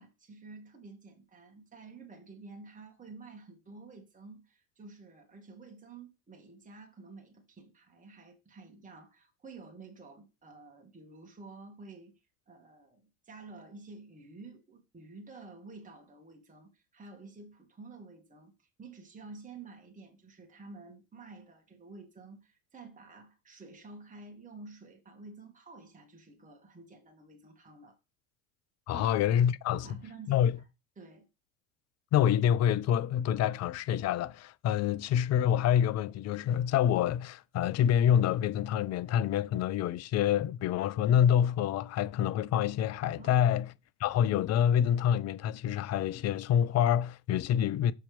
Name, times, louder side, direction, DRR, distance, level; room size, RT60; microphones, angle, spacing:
voice 1, 0.0-12.2 12.5-28.0 28.9-29.1 29.7-30.5 31.0-31.3 43.2-43.6, right 3 dB, 20° right, 2.3 m, -50 dB
voice 2, 28.9-29.8 30.3-30.6 32.1-43.7 44.0-47.9, left 9 dB, 40° left, 0.6 m, -27 dB
6.6 x 4.2 x 5.2 m
hypercardioid pair, 75°, 41 cm